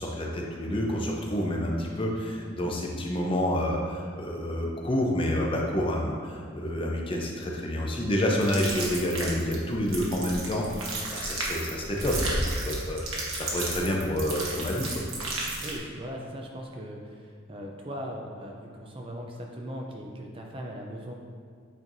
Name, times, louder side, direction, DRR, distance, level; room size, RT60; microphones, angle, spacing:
voice 1, 0.0-15.0, equal, 25° left, -1 dB, 0.6 m, -29 dB
sound 1, 6.4-6.7 7.4-7.5 7.7-7.8 8.2-8.3 10.2-10.3 10.7-11.0 11.6-13.0, equal, 75° left, 1.5 m, -33 dB
sound 2, 8.4-15.8, right 2 dB, 85° right, 1.3 m, -34 dB
voice 2, 15.6-21.1, equal, 25° right, 1 dB, 0.4 m, -39 dB
8.6 x 4.4 x 2.6 m, 2.1 s
head